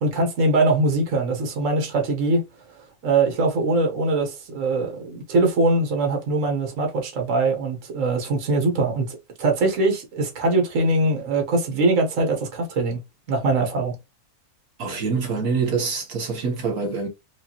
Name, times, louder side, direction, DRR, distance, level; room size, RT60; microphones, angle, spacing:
voice 1, 0.0-2.4 3.0-13.0 13.3-13.9, right 2 dB, 60° right, 1.5 m, -22 dB
voice 2, 14.8-17.1, right 5 dB, 75° right, 1.7 m, -25 dB
4.9 x 2.4 x 2.9 m
omnidirectional pair, 1.6 m